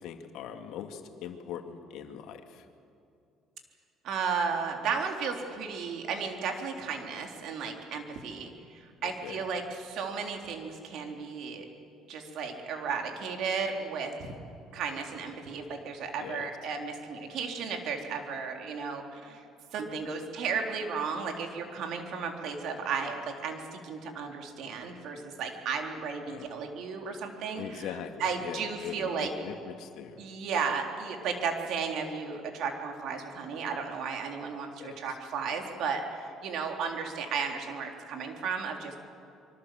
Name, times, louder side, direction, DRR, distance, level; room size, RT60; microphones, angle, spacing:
voice 1, 0.0-2.7 9.0-9.5 16.2-16.5 26.2-26.5 27.6-30.2 34.8-35.0, left 8 dB, 75° left, 6 dB, 2.1 m, -41 dB
voice 2, 4.0-11.6 12.1-14.1 14.7-19.4 19.7-27.9 28.2-29.3 30.2-39.0, right 5 dB, 70° right, 3 dB, 3.6 m, -34 dB
25.5 x 23.5 x 7.7 m, 2.6 s
cardioid pair, 110°, 0 cm